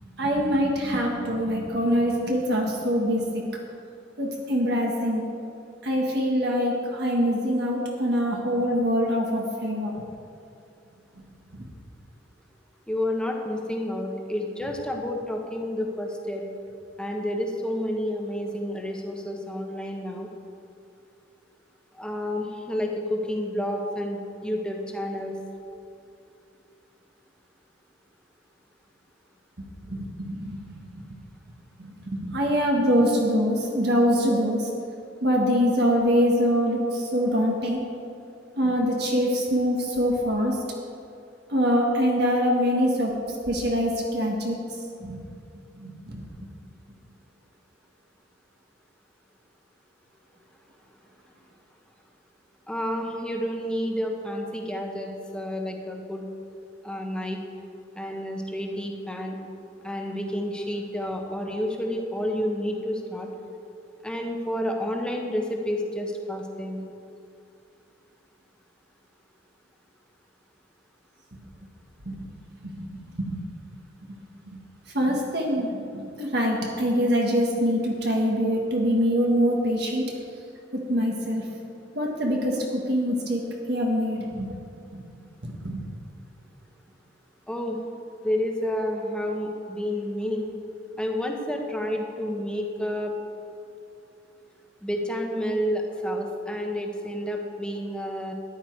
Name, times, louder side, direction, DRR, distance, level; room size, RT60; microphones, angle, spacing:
voice 1, 0.2-3.4 4.2-5.2 5.8-9.9 11.5-11.6 29.6-30.6 30.9-31.0 31.8-34.7 35.2-37.8 38.6-40.6 41.5-43.1 43.5-44.6 45.0-45.2 45.8-46.2 72.0-72.2 72.6-73.4 74.5-74.6 74.9-75.7 75.9-80.0 80.9-81.4 81.9-83.4 83.7-84.5 84.9-85.0 85.4-85.8, equal, 60° right, -1 dB, 1.7 m, -24 dB
voice 2, 12.9-16.4 17.0-20.3 22.0-25.4 52.7-56.3 56.8-57.4 58.0-59.4 59.8-63.3 64.0-66.9 76.7-76.8 87.5-87.8 88.2-90.5 91.0-93.1 94.8-98.3, equal, 5° left, 1 dB, 1.2 m, -30 dB
14.0 x 10.5 x 4.7 m, 2.6 s
head